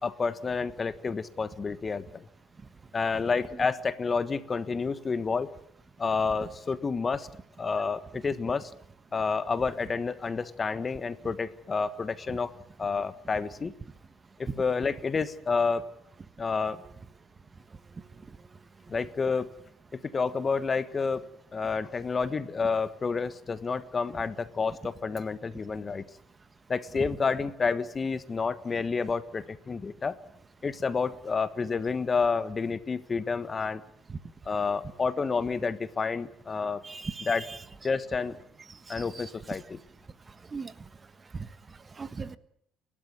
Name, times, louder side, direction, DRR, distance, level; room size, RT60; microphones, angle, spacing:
voice 1, 0.0-2.3 2.9-5.5 6.0-7.3 7.6-8.7 9.1-13.7 14.4-15.9 16.4-16.8 18.9-19.5 19.9-21.3 21.5-26.0 26.7-30.1 30.6-33.8 34.4-36.8 37.2-37.5 37.8-38.4 38.9-39.8, left 5 dB, 30° left, 14 dB, 1.3 m, -29 dB
voice 2, 36.8-37.6 38.9-39.2 40.5-40.7 41.3-41.5 42.0-42.4, right 4 dB, 25° right, 14 dB, 1.3 m, -38 dB
29.5 x 12.5 x 9.6 m, 0.71 s
supercardioid pair, 90°, 0 cm